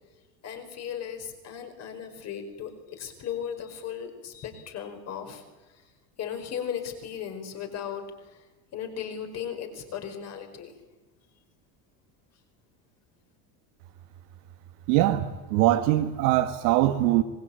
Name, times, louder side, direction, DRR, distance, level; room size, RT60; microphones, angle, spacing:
voice 1, 0.4-5.4 5.7-5.8 6.2-8.4 8.7-10.8, left 8 dB, 35° left, 4.9 m, -36 dB
voice 2, 14.9-17.2, right 14 dB, 90° right, 2.0 m, -22 dB
24.5 x 21.5 x 8.8 m
cardioid pair, 170°, 43 cm